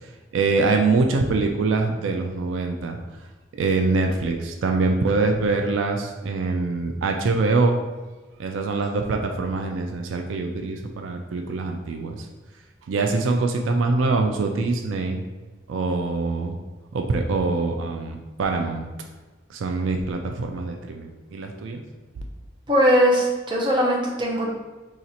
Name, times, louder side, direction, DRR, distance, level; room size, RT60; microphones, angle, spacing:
voice 1, 0.3-3.0 3.5-7.8 8.4-12.3 12.9-15.2 15.7-16.6 16.9-18.9 19.5-21.8 22.2-22.3, right 3 dB, 85° right, 3 dB, 0.4 m, -24 dB
voice 2, 22.7-24.5, equal, 25° right, -3 dB, 0.6 m, -20 dB
4.1 x 2.4 x 2.8 m, 1.2 s
head